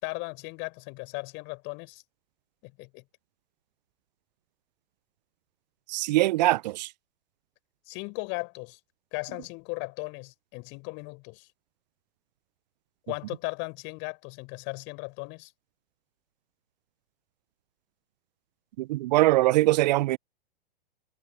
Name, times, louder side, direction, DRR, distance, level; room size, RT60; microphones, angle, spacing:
voice 1, 0.0-2.0 2.6-3.0 7.9-8.8 9.1-11.5 13.1-15.5, left 29 dB, 40° left, 5.1 m, -37 dB
voice 2, 5.9-6.9 18.8-20.2, right 17 dB, 45° right, 0.6 m, -22 dB
figure-of-eight pair, 110°, 29 cm